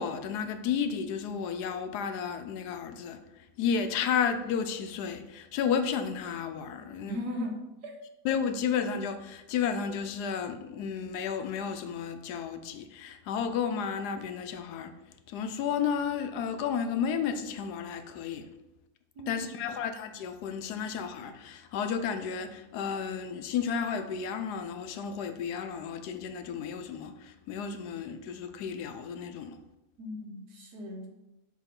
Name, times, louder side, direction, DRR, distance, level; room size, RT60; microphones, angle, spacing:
voice 1, 0.0-3.2 3.6-7.2 8.2-14.9 15.3-18.5 19.3-29.6, left 7 dB, 80° left, 1.1 m, -32 dB
voice 2, 7.0-7.9 19.2-19.5 30.0-31.1, left 1 dB, 80° right, 1.6 m, -37 dB
6.5 x 3.0 x 5.2 m
omnidirectional pair, 1.7 m